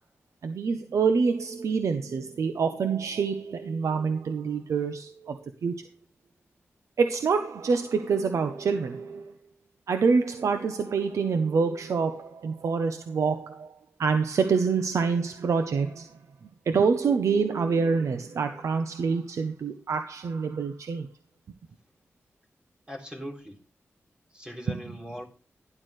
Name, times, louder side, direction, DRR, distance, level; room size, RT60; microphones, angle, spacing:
voice 1, 0.4-5.8 7.0-9.3 9.9-13.7 14.0-16.2 16.7-21.1 24.7-24.8, right 5 dB, 85° right, 0.8 m, -26 dB
voice 2, 22.9-23.6 24.3-25.2, equal, 20° right, 3.7 m, -40 dB
12.0 x 11.0 x 3.2 m
cardioid pair, 70°, 5 cm